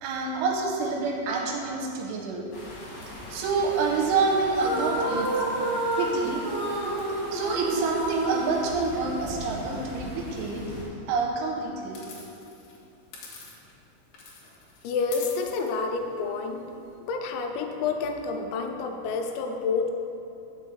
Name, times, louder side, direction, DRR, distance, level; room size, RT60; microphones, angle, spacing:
voice 1, 0.0-2.4 3.3-5.3 6.0-6.4 7.3-10.6 11.1-12.0, right 4 dB, 85° right, 0 dB, 3.0 m, -27 dB
sound 1, 2.5-10.8, left 1 dB, 45° left, 2.2 m, -41 dB
sound 2, 4.5-9.4, right 2 dB, 70° right, 1.6 m, -29 dB
sound 3, 11.9-13.9 14.1-17.0, left 4 dB, 70° left, 2.2 m, -46 dB
voice 2, 14.8-16.7 17.0-19.9, left 4 dB, 90° left, 4 dB, 3.3 m, -29 dB
6.1 x 5.5 x 7.1 m, 2.8 s
omnidirectional pair, 5.8 m